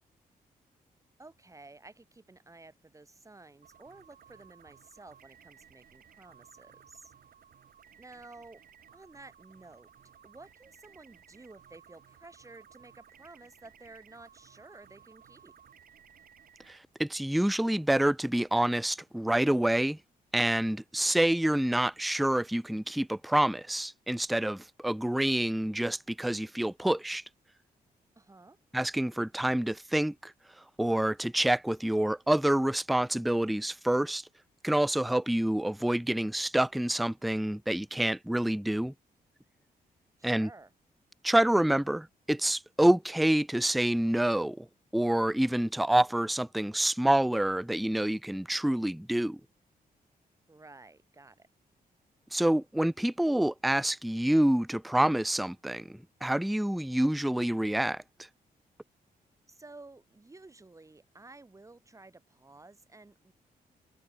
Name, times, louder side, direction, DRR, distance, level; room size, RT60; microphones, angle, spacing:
voice 1, 1.2-7.1 8.0-8.6 8.9-9.9 10.2-15.5 28.2-28.6 40.2-40.7 50.5-51.5 59.5-63.3, right 3 dB, 20° right, 4.0 m, -53 dB
sound 1, 3.6-16.8, right 8 dB, 65° right, 3.1 m, -58 dB
voice 2, 16.7-20.0 20.3-27.2 28.7-30.3 30.8-34.3 34.6-38.9 40.2-40.5 41.2-44.7 44.9-49.4 52.3-58.0, right 1 dB, ahead, 0.3 m, -27 dB
cardioid pair, 110°, 16 cm